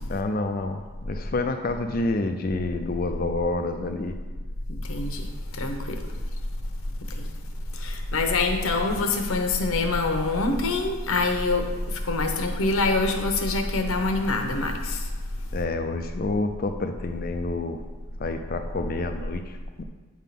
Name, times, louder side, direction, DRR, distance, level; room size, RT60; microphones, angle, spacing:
voice 1, 0.1-4.2 15.5-17.8 18.2-19.8, left 2 dB, 40° left, 6 dB, 0.4 m, -28 dB
voice 2, 4.9-5.2 5.6-6.0 7.2-7.3 7.8-11.7 12.1-15.0, left 3 dB, 75° left, 4 dB, 0.9 m, -25 dB
9.1 x 3.6 x 5.8 m, 1.3 s
head